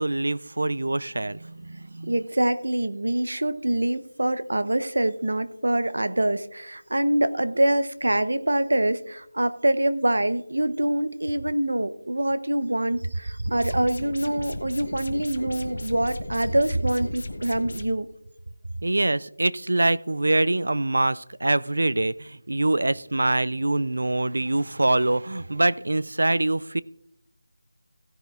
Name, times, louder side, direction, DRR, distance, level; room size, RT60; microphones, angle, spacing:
voice 1, 0.0-2.1 18.8-26.8, right 2 dB, 60° right, 0.4 m, -24 dB
voice 2, 2.0-18.1, right 1 dB, 80° right, 0.8 m, -25 dB
sound 1, 13.5-17.8, left 1 dB, 40° left, 1.1 m, -35 dB
16.0 x 10.5 x 2.4 m
figure-of-eight pair, 180°, 0 cm